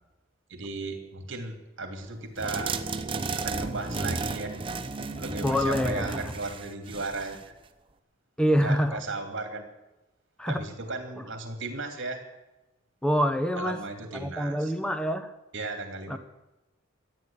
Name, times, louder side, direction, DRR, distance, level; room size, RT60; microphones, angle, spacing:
voice 1, 0.5-2.8 3.3-4.5 5.2-7.5 8.5-9.7 10.5-12.2 13.6-14.7 15.5-16.2, right 3 dB, 65° right, 4 dB, 2.9 m, -36 dB
sound 1, 2.4-7.4, right 3 dB, 25° right, 0.8 m, -33 dB
voice 2, 5.4-6.2 8.4-9.0 10.4-10.6 13.0-13.8 14.1-15.3 16.1-16.2, equal, 5° left, 9 dB, 0.9 m, -26 dB
13.5 x 9.7 x 8.8 m, 0.99 s
head